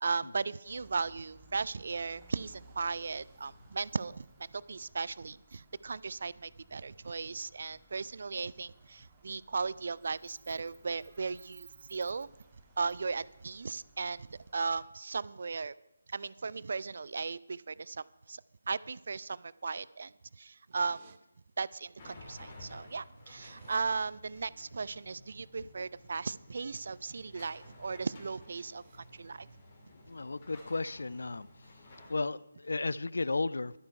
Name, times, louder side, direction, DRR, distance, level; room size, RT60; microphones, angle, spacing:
voice 1, 0.0-12.3 12.8-15.7 16.1-21.0 21.6-29.5, right 4 dB, 50° right, 0.3 m, -37 dB
sound 1, 0.6-14.8, right 3 dB, 15° right, 1.5 m, -60 dB
sound 2, 20.7-21.2 22.4-22.5 22.7-23.8 27.0-27.3 27.7-28.0 28.4-29.0, right 7 dB, 30° right, 0.7 m, -64 dB
sound 3, 22.0-32.2, left 1 dB, 30° left, 2.3 m, -54 dB
voice 2, 30.1-31.5 32.1-33.7, left 3 dB, 60° left, 0.4 m, -34 dB
11.5 x 9.0 x 5.4 m
figure-of-eight pair, 150°, 0 cm